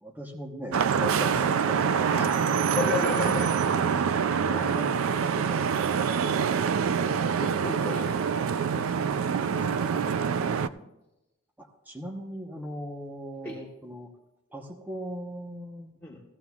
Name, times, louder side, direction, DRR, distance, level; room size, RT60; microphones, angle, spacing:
voice 1, 0.0-2.8 3.9-5.7 9.4-10.2 11.6-14.1 14.5-15.9, equal, 10° right, 2 dB, 0.9 m, -39 dB
Vehicle horn car horn honking / Traffic noise roadway noise, 0.7-10.7, right 6 dB, 65° right, 0.3 m, -25 dB
voice 2, 2.7-3.9 4.4-4.7 6.0-6.2 6.9-8.4 8.7-9.0 10.3-10.8 13.4-13.6 16.0-16.2, left 3 dB, 10° left, -6 dB, 1.3 m, -34 dB
15.5 x 15.0 x 2.4 m, 0.96 s
head